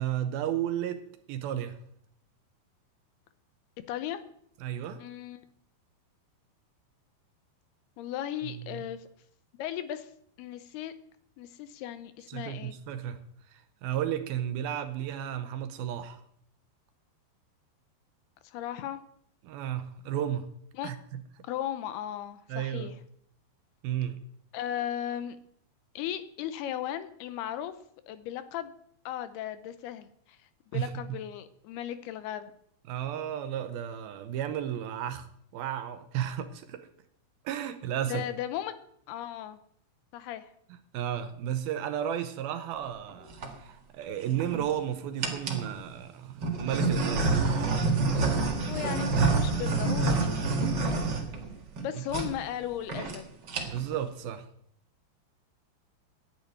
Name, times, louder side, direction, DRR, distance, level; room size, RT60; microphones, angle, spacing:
voice 1, 0.0-1.8 4.6-5.0 8.4-8.8 12.3-13.2 13.5-16.2 19.4-20.5 20.8-21.0 22.5-22.9 23.8-24.2 30.7-30.9 32.9-36.9 37.5-38.2 40.9-47.4 51.9-52.0 53.7-54.5, right 10 dB, 75° right, 9 dB, 2.5 m, -33 dB
voice 2, 3.9-4.2 5.0-5.4 8.0-9.1 9.6-10.1 10.4-10.9 11.4-12.7 18.4-19.0 20.7-20.9 21.4-22.9 24.5-25.4 26.0-27.7 28.1-28.7 29.1-30.4 30.7-32.5 38.1-38.7 39.1-39.6 40.1-40.5 48.6-51.2 51.8-53.2, left 11 dB, 80° left, 12 dB, 2.7 m, -36 dB
sound 1, 43.1-43.5 44.2-44.7 45.2-45.7 46.4-51.8 52.1-52.3 52.6-52.7 52.9-53.2 53.4-53.9, right 3 dB, 45° right, 1.3 m, -27 dB
10.5 x 9.3 x 9.2 m, 0.68 s
omnidirectional pair, 4.8 m